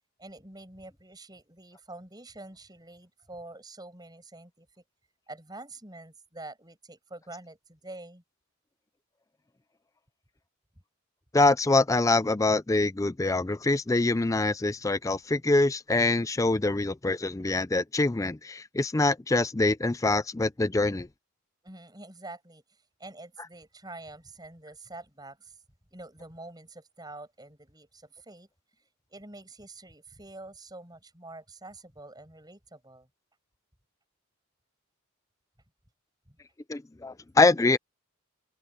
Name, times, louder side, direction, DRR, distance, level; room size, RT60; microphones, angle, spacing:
voice 1, 0.2-4.8 5.3-8.2 21.6-25.6 25.9-28.5 29.1-33.1 36.3-36.4, right 2 dB, 20° right, 5.8 m, -46 dB
voice 2, 11.3-21.1 36.7-37.8, left 2 dB, 15° left, 0.4 m, -24 dB
open air
head